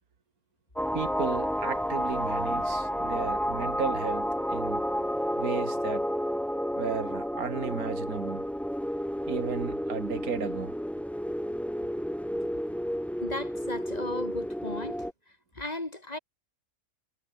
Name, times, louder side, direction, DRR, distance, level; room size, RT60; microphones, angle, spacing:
sound 1, 0.8-15.1, equal, ahead, 1.2 m, -31 dB
voice 1, 0.9-4.8 5.4-6.1 6.8-8.5 9.3-10.7, right 6 dB, 90° right, 2.3 m, -34 dB
voice 2, 13.2-15.0 15.3-16.2, left 2 dB, 30° left, 2.4 m, -36 dB
omnidirectional pair, 1.5 m